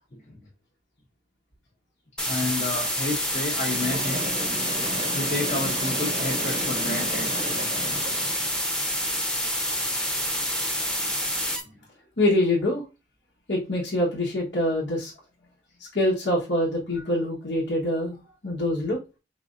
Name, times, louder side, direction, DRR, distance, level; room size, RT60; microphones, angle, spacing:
sound 1, 2.2-11.6, equal, 5° left, 0.8 m, -27 dB
voice 1, 2.3-4.3 5.1-7.3 11.0-11.1, left 2 dB, 40° left, -3 dB, 0.9 m, -31 dB
Train, 3.5-8.6, right 1 dB, 30° right, 0.7 m, -34 dB
voice 2, 12.2-12.8 13.5-15.1 15.9-18.2 18.4-19.0, left 1 dB, 75° left, -5 dB, 1.3 m, -24 dB
4.8 x 3.4 x 2.6 m, 0.27 s
head